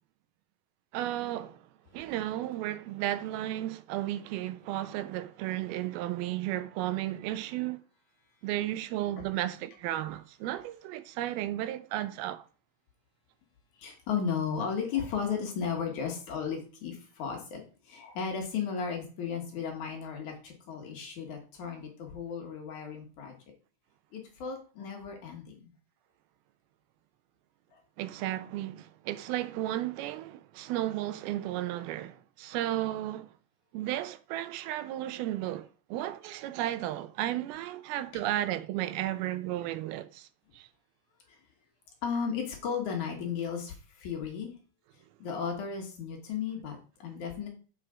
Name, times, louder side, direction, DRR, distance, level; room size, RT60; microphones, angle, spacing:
voice 1, 0.9-1.6 1.9-7.8 8.4-12.4 28.0-33.3 33.7-40.3 40.5-40.7, right 14 dB, 90° right, 2.5 m, -34 dB
voice 2, 13.8-23.3 24.1-25.7 27.7-27.8 41.3-41.4 42.0-44.5 45.2-47.5, left 6 dB, 60° left, 2.6 m, -35 dB
7.7 x 4.9 x 4.9 m
omnidirectional pair, 4.3 m